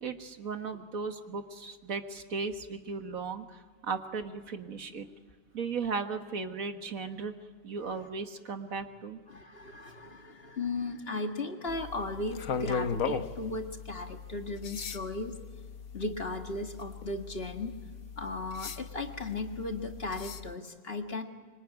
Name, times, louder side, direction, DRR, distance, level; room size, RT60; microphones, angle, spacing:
voice 1, 0.0-5.1 5.5-7.3 7.6-9.2, right 4 dB, 80° right, 7 dB, 2.0 m, -36 dB
voice 2, 9.3-15.4 15.9-17.7 18.2-21.2, left 2 dB, 45° left, 5 dB, 2.1 m, -36 dB
sound 1, 11.7-20.5, left 6 dB, 80° left, 1.5 m, -39 dB
25.5 x 24.5 x 9.4 m, 1.5 s
omnidirectional pair, 1.4 m